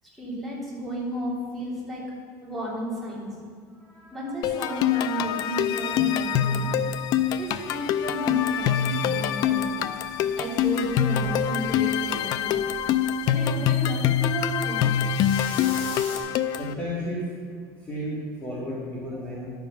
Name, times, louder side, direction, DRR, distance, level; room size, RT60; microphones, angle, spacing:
voice 1, 0.1-2.1 2.4-3.3 4.1-6.7 7.4-9.8 10.4-12.6 13.2-14.9 19.1-19.4, equal, ahead, -7 dB, 3.4 m, -33 dB
voice 2, 3.7-4.4 4.7-4.8 16.5-17.2 17.8-19.5, left 1 dB, 15° left, -7 dB, 2.0 m, -34 dB
sound 1, 4.4-16.7, left 9 dB, 45° left, 0.4 m, -25 dB
sound 2, 5.6-16.2, left 3 dB, 65° left, 3.3 m, -46 dB
11.0 x 7.3 x 5.8 m, 2.1 s
cardioid pair, 150°, 9 cm